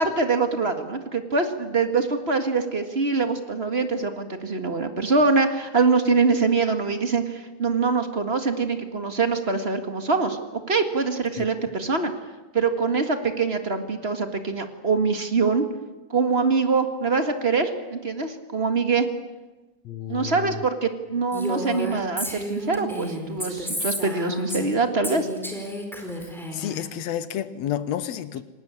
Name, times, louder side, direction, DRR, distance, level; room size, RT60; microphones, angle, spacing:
voice 1, 0.0-10.4 10.7-12.1 12.5-15.7 16.1-19.1 20.1-25.3, right 4 dB, 25° right, 1.4 m, -24 dB
voice 2, 19.8-20.6 26.2-28.4, left 10 dB, 65° left, 2.1 m, -31 dB
Female speech woman speaking, 21.3-24.7 25.0-26.8, equal, ahead, 4.3 m, -31 dB
28.5 x 19.5 x 8.9 m
omnidirectional pair, 3.5 m